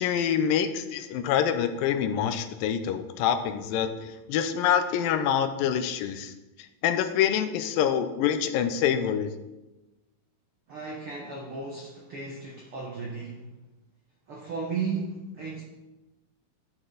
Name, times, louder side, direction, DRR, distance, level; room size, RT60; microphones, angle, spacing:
voice 1, 0.0-6.3 6.8-9.3, left 9 dB, 85° left, 9 dB, 2.3 m, -26 dB
voice 2, 10.7-13.4 14.3-15.6, right 4 dB, 75° right, -2 dB, 1.3 m, -35 dB
11.5 x 6.1 x 3.8 m, 1.0 s
omnidirectional pair, 4.0 m